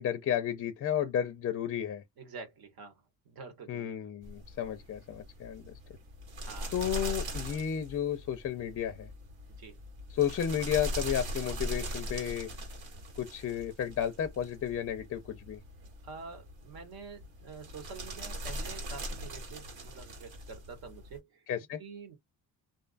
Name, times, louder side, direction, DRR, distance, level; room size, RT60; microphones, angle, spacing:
voice 1, 0.0-2.0 3.7-5.8 6.7-9.1 10.1-12.5 13.2-15.6 21.5-21.8, left 9 dB, 40° left, 0.4 m, -32 dB
voice 2, 2.2-3.0 3.2-3.9 6.4-6.8 9.6-9.8 16.0-21.4 21.8-22.2, right 4 dB, 70° right, 1.2 m, -47 dB
sound 1, 4.2-21.2, equal, 90° right, 1.5 m, -41 dB
2.5 x 2.2 x 2.4 m
cardioid pair, 130°, 38 cm